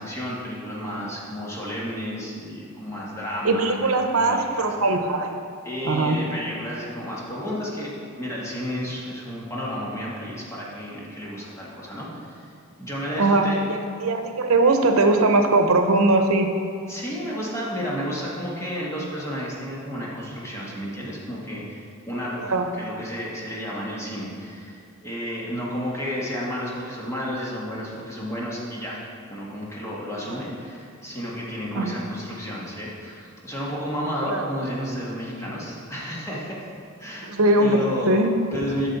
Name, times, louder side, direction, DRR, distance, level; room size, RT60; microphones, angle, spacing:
voice 1, 0.0-4.7 5.6-12.5 12.8-13.7 16.9-29.0 29.3-36.7 37.0-37.3 37.6-38.9, equal, 15° left, -5 dB, 1.5 m, -32 dB
voice 2, 3.4-5.3 5.8-6.2 13.2-16.5 22.4-22.7 30.3-30.4 31.7-32.0 34.3-34.4 37.3-37.8 38.1-38.3, right 2 dB, 90° right, 5 dB, 0.7 m, -20 dB
9.4 x 6.3 x 4.0 m, 2.4 s
head